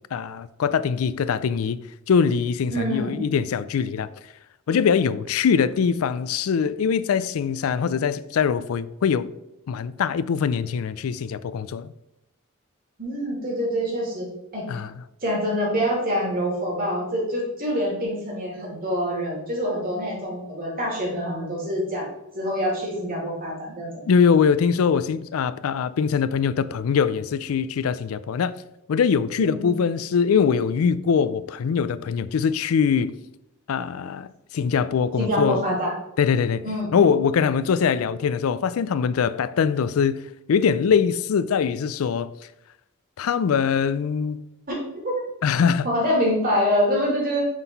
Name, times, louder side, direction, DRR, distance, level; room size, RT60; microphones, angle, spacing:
voice 1, 0.1-1.8 2.1-4.1 4.7-9.3 9.7-11.9 14.7-14.9 24.1-28.5 28.9-33.1 33.7-35.6 36.2-36.6 36.9-40.2 40.5-42.3 43.2-44.5 45.4-45.9, left 6 dB, 85° left, 0.4 m, -22 dB
voice 2, 2.7-3.2 13.0-14.3 14.5-14.7 15.2-22.1 22.3-24.0 29.4-29.8 35.2-35.9 36.6-36.9 44.7-44.8 45.0-45.1 45.8-47.4, equal, 45° right, 2.5 m, -25 dB
6.3 x 3.8 x 5.3 m
head